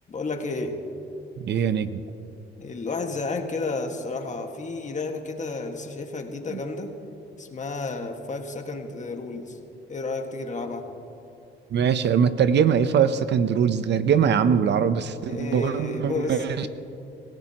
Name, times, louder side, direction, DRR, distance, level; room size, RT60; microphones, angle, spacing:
voice 1, 0.1-0.8 2.6-7.0 7.4-9.6 9.9-10.9 15.3-16.7, left 3 dB, 35° left, 4 dB, 1.8 m, -31 dB
voice 2, 1.4-2.0 11.7-16.7, right 7 dB, 60° right, 12 dB, 0.7 m, -22 dB
26.0 x 16.5 x 3.0 m, 2.9 s
cardioid pair, 90°, 20 cm